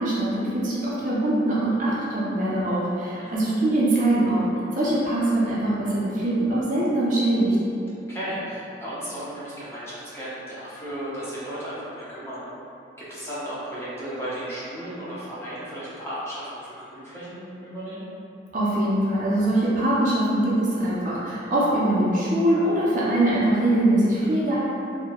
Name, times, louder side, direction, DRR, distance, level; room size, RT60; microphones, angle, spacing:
voice 1, 0.0-4.5 4.8-7.6 18.5-24.7, right 1 dB, 45° right, -8 dB, 0.4 m, -22 dB
voice 2, 3.2-3.5 8.1-12.4 13.0-18.1, right 1 dB, 15° left, -10 dB, 0.5 m, -35 dB
2.9 x 2.1 x 2.2 m, 2.7 s
head